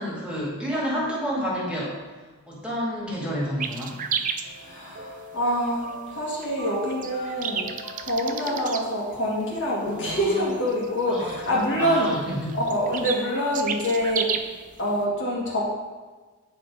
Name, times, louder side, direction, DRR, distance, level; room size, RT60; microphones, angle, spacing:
voice 1, 0.0-2.0 2.5-4.0 9.9-10.5 11.1-12.5, equal, 5° right, -6 dB, 2.1 m, -30 dB
sound 1, 3.6-15.0, right 7 dB, 40° right, 0.5 m, -33 dB
sound 2, 4.4-9.4, right 1 dB, 75° right, 1.7 m, -42 dB
voice 2, 4.6-7.7 8.0-12.2 12.5-14.5 14.8-15.7, equal, 60° left, -4 dB, 1.9 m, -26 dB
9.1 x 4.5 x 4.9 m, 1.3 s
head